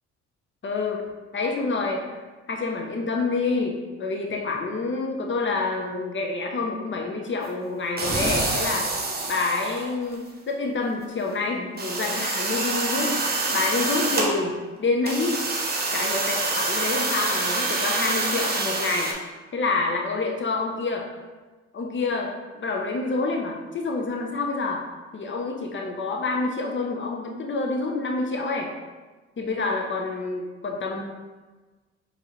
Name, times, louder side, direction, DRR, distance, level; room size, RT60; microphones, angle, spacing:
voice 1, 0.6-1.0 1.3-2.2 2.5-8.9 9.3-13.1 13.5-15.5 15.9-19.1 19.5-21.1 21.7-24.8 25.1-28.7 29.4-31.0, left 3 dB, 35° left, 1 dB, 0.9 m, -27 dB
sound 1, 8.0-10.1 10.9-11.0 11.3-11.4 11.8-14.3 15.0-19.1, right 3 dB, 30° right, 1.0 m, -26 dB
4.6 x 3.2 x 3.2 m, 1.3 s
supercardioid pair, 65°, 31 cm